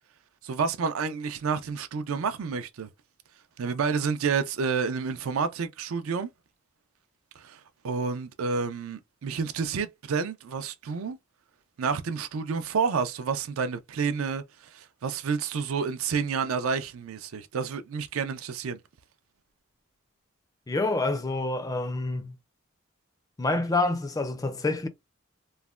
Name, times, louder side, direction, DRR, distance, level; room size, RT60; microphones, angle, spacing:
voice 1, 0.4-2.9 3.6-6.3 7.4-11.2 11.8-18.8, right 5 dB, 85° right, 0.4 m, -29 dB
voice 2, 20.7-22.4 23.4-24.9, left 2 dB, 15° left, 0.3 m, -27 dB
3.1 x 2.1 x 2.3 m
head